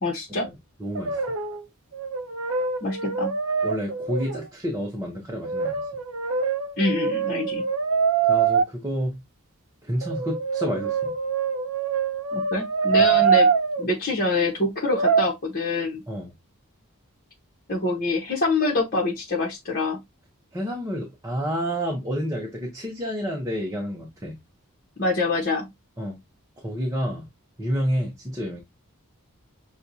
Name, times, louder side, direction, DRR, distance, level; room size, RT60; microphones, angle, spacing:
voice 1, 0.0-0.5 2.8-3.3 6.8-7.6 12.3-13.5 13.8-16.0 17.7-20.0 25.0-25.7, left 2 dB, 40° left, 1.0 m, -25 dB
voice 2, 0.8-1.2 3.6-5.9 8.2-9.2 9.8-11.1 13.0-13.2 16.1-16.3 20.5-24.4 26.0-26.2 26.6-27.3 27.6-28.6, equal, 15° right, 0.8 m, -29 dB
Brass instrument, 1.0-1.6 1.9-4.4 5.4-8.6 10.0-13.8 14.8-15.3, right 6 dB, 70° right, 0.7 m, -24 dB
6.4 x 2.4 x 2.7 m
head